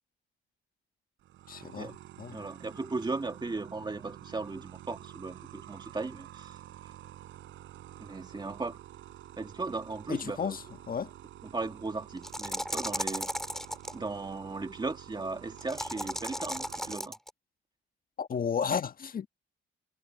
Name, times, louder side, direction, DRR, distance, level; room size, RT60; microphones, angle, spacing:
sound 1, 1.2-17.0, right 13 dB, 80° right, 4.7 m, -49 dB
voice 1, 1.5-2.5 10.1-11.1 18.2-19.3, left 7 dB, 45° left, 1.5 m, -33 dB
voice 2, 2.3-6.6 8.0-8.8 9.4-10.6 11.5-13.3 13.9-17.2, right 3 dB, 20° right, 2.0 m, -37 dB
sound 2, 12.2-13.9 15.6-17.3, equal, ahead, 3.9 m, -35 dB
cardioid pair, 90°, 20 cm